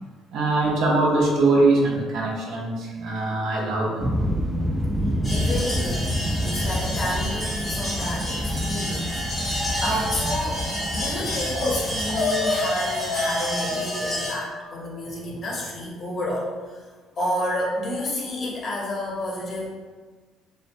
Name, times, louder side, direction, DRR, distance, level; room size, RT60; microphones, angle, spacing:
voice 1, 0.3-4.0, right 2 dB, 70° right, -2 dB, 0.6 m, -22 dB
sound 1, 4.0-13.4, equal, 15° right, 0.3 m, -28 dB
sound 2, 5.2-14.3, equal, 15° left, 1.0 m, -30 dB
voice 2, 5.3-10.6 10.9-16.9 17.2-19.7, left 1 dB, 45° left, -3 dB, 0.6 m, -30 dB
sound 3, 11.5-11.8 12.1-14.9, left 3 dB, 85° left, 0.5 m, -28 dB
2.5 x 2.1 x 2.5 m, 1.4 s
cardioid pair, 125°, 0 cm